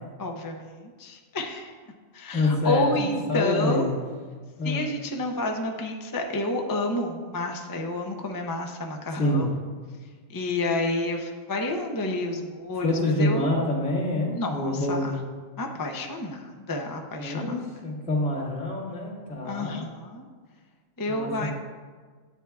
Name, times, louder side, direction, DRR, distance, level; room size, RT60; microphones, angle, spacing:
voice 1, 0.2-1.7 2.1-3.8 4.6-9.5 10.3-13.5 14.4-15.1 15.6-17.8 19.4-20.2 21.0-21.5, left 2 dB, 30° left, 2 dB, 0.4 m, -30 dB
voice 2, 2.3-3.9 4.6-4.9 9.2-9.4 12.8-15.1 17.2-19.8 21.1-21.5, left 1 dB, 60° left, -6 dB, 2.3 m, -26 dB
10.5 x 8.6 x 2.3 m, 1.5 s
omnidirectional pair, 1.4 m